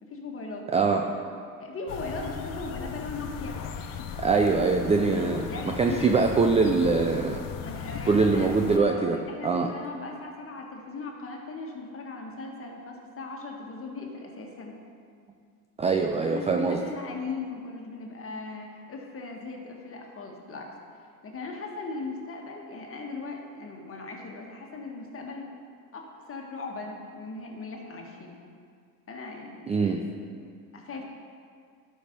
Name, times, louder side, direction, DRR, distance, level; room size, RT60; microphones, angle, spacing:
voice 1, 0.0-0.7 1.6-3.6 5.5-6.1 7.6-14.8 16.3-20.7 21.2-25.5 25.9-28.4 29.1-29.7 30.7-31.0, left 3 dB, 30° left, 1 dB, 1.8 m, -38 dB
voice 2, 0.7-1.0 4.2-5.5 5.8-7.4 8.1-9.2 9.4-9.7 15.8-16.8 29.7-30.0, right 4 dB, 15° right, 3 dB, 0.5 m, -23 dB
sound 1, 1.9-8.8, left 7 dB, 45° left, 0.9 m, -37 dB
12.0 x 5.5 x 5.2 m, 2.2 s
hypercardioid pair, 85°, 47 cm